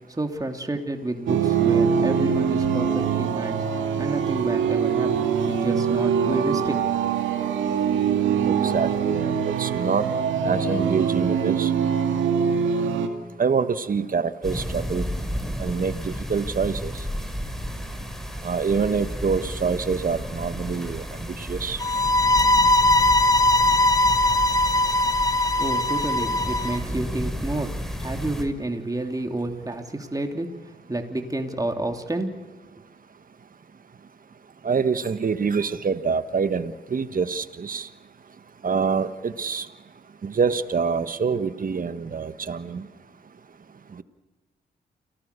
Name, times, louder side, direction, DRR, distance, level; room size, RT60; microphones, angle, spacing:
voice 1, 0.1-3.6 4.0-6.8 25.6-30.5 30.9-32.4, right 2 dB, 20° right, 4 dB, 3.2 m, -29 dB
sound 1, 1.3-13.1, right 7 dB, 75° right, 2.4 m, -23 dB
voice 2, 8.5-10.1 10.4-11.7 13.4-15.0 15.6-16.9 18.4-21.0 21.4-21.8 34.6-37.9 38.6-39.7 40.2-42.8, right 5 dB, 45° right, 11 dB, 1.6 m, -26 dB
sound 2, 14.4-28.4, equal, ahead, 6.2 m, -32 dB
sound 3, 21.8-26.8, left 2 dB, 20° left, 1.4 m, -20 dB
29.0 x 18.0 x 7.0 m, 1.3 s
hypercardioid pair, 45°, 20 cm